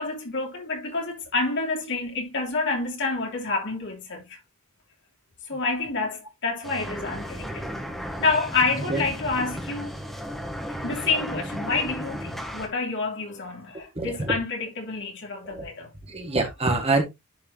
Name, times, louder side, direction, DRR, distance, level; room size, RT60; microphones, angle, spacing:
voice 1, 0.0-4.4 5.5-7.8 8.2-10.0 10.8-15.9, left 3 dB, 60° left, 3.1 m, -28 dB
sound 1, 6.6-12.7, equal, ahead, 1.6 m, -34 dB
voice 2, 13.9-14.4 15.4-15.7 16.1-17.0, right 2 dB, 30° right, 1.7 m, -25 dB
11.0 x 4.6 x 2.8 m
head